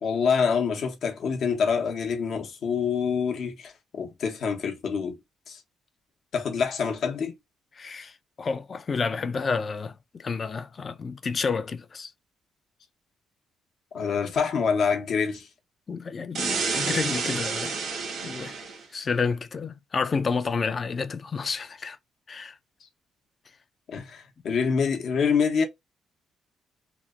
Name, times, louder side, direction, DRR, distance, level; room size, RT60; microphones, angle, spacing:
voice 1, 0.0-5.2 5.5-5.6 6.3-7.3 13.9-15.5 23.9-25.6, left 6 dB, 65° left, 0.8 m, -26 dB
voice 2, 7.8-8.1 8.4-12.1 15.9-17.7 18.2-18.5 18.9-22.0 22.3-22.5, left 5 dB, 40° left, 0.4 m, -30 dB
sound 1, 16.3-18.8, right 4 dB, 75° right, 0.9 m, -29 dB
2.8 x 2.1 x 2.3 m
cardioid pair, 90°, 0 cm